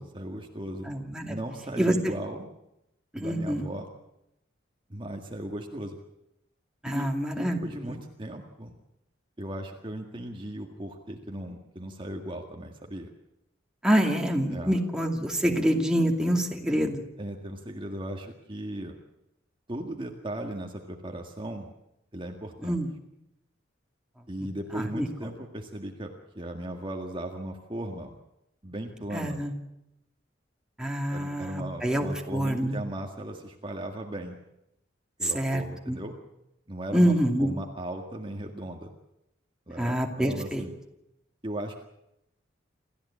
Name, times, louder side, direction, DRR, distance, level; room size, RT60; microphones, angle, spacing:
voice 1, 0.0-0.9 1.3-2.5 3.1-3.9 4.9-6.0 6.8-8.7 9.4-13.1 14.5-14.7 15.5-15.6 17.2-19.0 19.7-21.7 22.1-22.8 24.3-28.1 28.6-29.4 31.1-34.4 35.2-36.2 36.7-37.1 37.4-38.9 39.7-40.7 41.4-41.8, right 1 dB, 25° right, 2 dB, 1.9 m, -37 dB
voice 2, 0.9-1.4 1.8-1.9 3.2-3.7 6.8-7.6 7.9-8.0 13.8-17.0 22.6-22.9 24.7-25.1 29.1-29.5 30.8-32.8 35.2-36.0 36.9-37.5 39.8-40.7, equal, 5° right, 1 dB, 2.5 m, -26 dB
28.0 x 14.0 x 8.6 m, 0.86 s
head